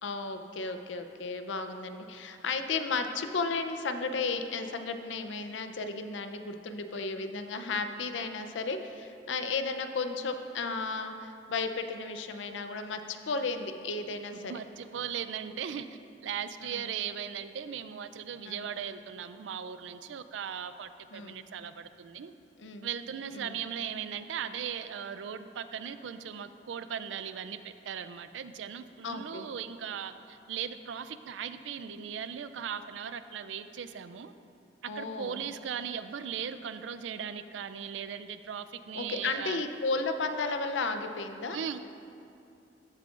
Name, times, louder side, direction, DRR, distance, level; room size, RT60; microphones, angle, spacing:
voice 1, 0.0-14.5 16.6-16.9 18.5-18.7 21.1-21.4 22.6-22.9 23.3-23.6 29.0-29.5 34.9-35.4 38.9-41.6, left 4 dB, 90° left, 8 dB, 0.6 m, -34 dB
voice 2, 14.3-15.9 16.2-22.3 22.8-34.3 34.8-39.6 41.5-41.8, right 8 dB, 85° right, 11 dB, 0.4 m, -38 dB
14.0 x 7.4 x 2.5 m, 2.6 s
head